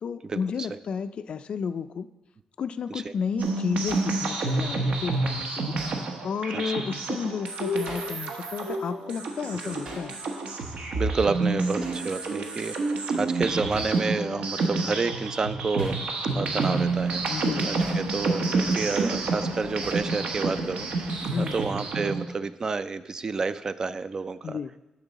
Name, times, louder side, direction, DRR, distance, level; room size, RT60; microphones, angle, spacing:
voice 1, 0.0-2.1 2.6-5.8 6.2-10.2 17.2-17.7 21.3-21.6 24.4-24.7, left 6 dB, 50° left, 12 dB, 0.3 m, -32 dB
sound 1, 3.4-22.3, right 3 dB, 70° right, 1.1 m, -29 dB
Hammer, 3.9-4.1 5.8-6.0 7.9-8.2 9.8-10.1 11.8-12.1 13.7-14.0 15.8-16.1 17.8-18.1 19.8-20.1, right 1 dB, 55° right, 2.3 m, -42 dB
voice 2, 10.9-15.9 16.3-17.2 17.6-20.9 21.4-24.6, right 4 dB, 30° right, 14 dB, 0.3 m, -29 dB
sound 2, 16.6-21.6, right 6 dB, 90° right, 0.7 m, -41 dB
9.0 x 6.7 x 4.0 m, 1.0 s
cardioid pair, 130°, 2 cm